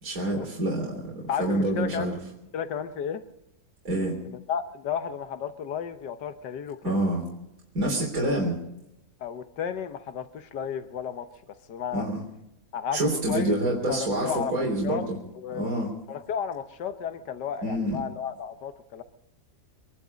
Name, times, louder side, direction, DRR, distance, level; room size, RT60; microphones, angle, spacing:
voice 1, 0.0-0.9 1.4-2.1 3.8-4.1 6.8-7.2 7.7-8.6 11.9-12.2 12.9-15.2 15.5-15.9 17.6-18.0, right 1 dB, 55° right, -2 dB, 3.8 m, -27 dB
voice 2, 1.3-2.2 2.5-3.2 4.2-7.1 9.2-11.3 11.7-12.1 12.7-13.0 13.3-15.1 15.3-15.7 16.1-19.0, left 7 dB, 85° left, 10 dB, 1.6 m, -33 dB
24.5 x 11.5 x 5.1 m, 0.86 s
omnidirectional pair, 1.8 m